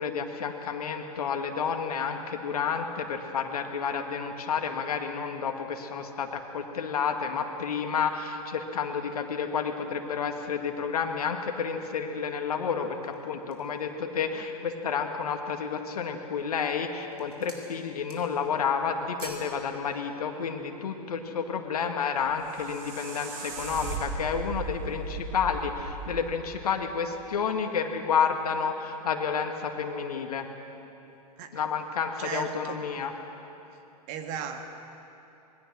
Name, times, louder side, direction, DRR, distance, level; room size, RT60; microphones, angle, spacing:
voice 1, 0.0-30.5 31.5-33.1, left 6 dB, 65° left, 5 dB, 2.0 m, -30 dB
sound 1, 12.8-13.8 14.4-14.5 15.0-15.5 16.2-16.6 16.9-17.7 18.0-18.5 18.8-19.5 19.9-20.0, right 3 dB, 75° right, 4.5 m, -47 dB
sound 2, 22.2-27.3, right 3 dB, 60° right, 4.5 m, -37 dB
voice 2, 32.2-32.8 34.1-34.6, right 7 dB, 40° right, 6 dB, 1.8 m, -36 dB
26.5 x 20.5 x 6.3 m, 2.9 s
figure-of-eight pair, 105°, 20 cm